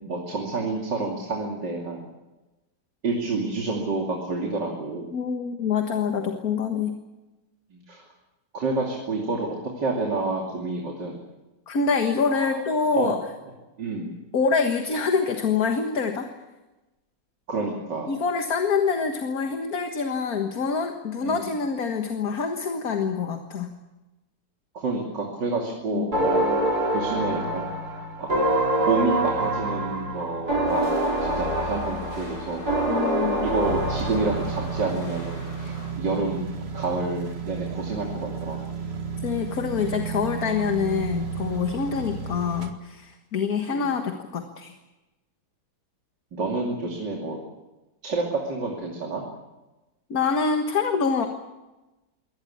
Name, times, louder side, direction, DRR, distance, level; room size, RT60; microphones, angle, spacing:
voice 1, 0.0-2.0 3.0-5.1 7.7-8.0 8.5-11.2 12.4-12.6 12.9-13.1 13.8-14.2 17.5-18.1 21.2-21.5 24.7-27.7 28.2-28.3 28.8-30.9 31.2-32.7 33.4-38.6 43.7-43.8 46.3-47.4 48.0-49.2, right 3 dB, 80° right, 0 dB, 3.4 m, -29 dB
voice 2, 5.1-7.0 11.7-13.2 14.3-16.3 18.1-23.7 25.9-26.1 32.9-33.5 39.2-44.7 50.1-51.3, left 5 dB, 55° left, 5 dB, 1.9 m, -25 dB
sound 1, 26.1-34.8, right 1 dB, 60° right, 3.7 m, -26 dB
sound 2, 30.6-35.9, left 1 dB, 75° left, 7.2 m, -41 dB
sound 3, 33.6-42.7, right 6 dB, 35° right, 1.9 m, -33 dB
23.0 x 18.0 x 8.6 m, 1.1 s
omnidirectional pair, 1.9 m